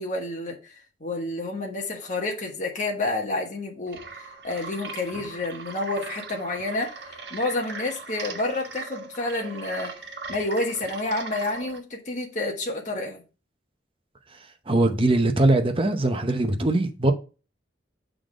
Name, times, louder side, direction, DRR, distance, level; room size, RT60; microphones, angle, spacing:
voice 1, 0.0-9.9 10.3-13.2, left 2 dB, 45° left, 1.3 m, -29 dB
sound 1, 3.9-11.8, right 4 dB, 65° right, 1.4 m, -39 dB
voice 2, 14.7-17.1, right 2 dB, 30° right, 0.8 m, -21 dB
7.1 x 3.9 x 4.9 m
head